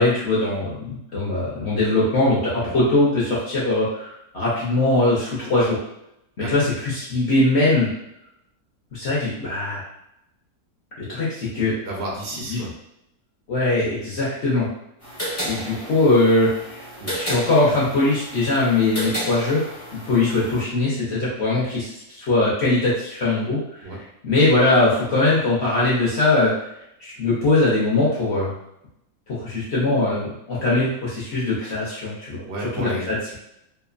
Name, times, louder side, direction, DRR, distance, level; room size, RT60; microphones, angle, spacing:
voice 1, 0.0-5.8 6.5-7.9 8.9-9.8 11.0-11.8 12.5-12.6 13.5-14.7 15.4-16.8 17.1-19.6 20.1-23.9 24.2-26.5 27.0-28.5 29.3-33.4, left 2 dB, 55° left, -7 dB, 0.7 m, -21 dB
voice 2, 11.8-12.7 17.0-17.1 23.8-24.0 32.4-33.1, right 1 dB, 75° right, -2 dB, 0.5 m, -31 dB
sound 1, 15.0-20.6, equal, 10° left, 0.7 m, -32 dB
2.9 x 2.1 x 2.4 m, 0.81 s
omnidirectional pair, 1.8 m